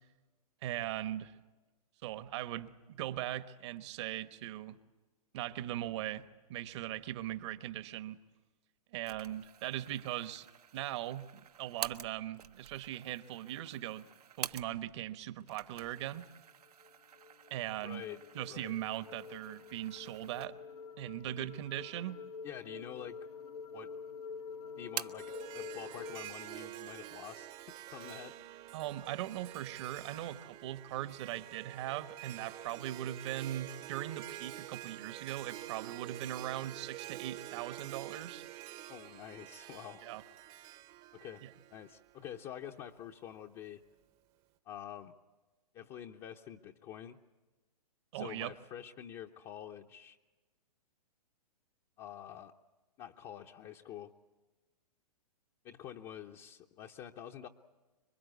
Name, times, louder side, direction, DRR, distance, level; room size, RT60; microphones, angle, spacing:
voice 1, 0.6-1.3 2.0-4.8 5.3-6.2 6.5-8.2 8.9-10.5 10.7-11.3 11.6-14.0 14.4-16.2 17.5-18.0 18.3-20.6 21.0-22.2 28.7-38.4 40.0-40.2 41.4-41.5 48.1-48.5, right 13 dB, 45° right, 12 dB, 1.2 m, -40 dB
sound 1, 9.1-15.1 15.4-20.9 21.3-21.4 22.2-22.9 23.2-24.0 24.2-25.4, right 9 dB, 75° right, 1.0 m, -48 dB
sound 2, 16.7-26.3, left 5 dB, 70° left, 1.2 m, -47 dB
voice 2, 17.8-18.2 18.5-18.8 21.4-21.5 22.4-23.2 23.7-23.9 24.8-28.3 38.9-40.0 41.1-41.4 41.7-43.8 44.7-45.1 45.7-47.2 48.1-50.2 52.0-52.5 53.0-54.1 55.6-57.5, left 10 dB, 25° left, 2 dB, 0.9 m, -47 dB
Harp, 25.2-42.4, right 14 dB, 30° right, 0.9 m, -48 dB
26.0 x 23.5 x 8.3 m, 1.2 s
hypercardioid pair, 130°, 20 cm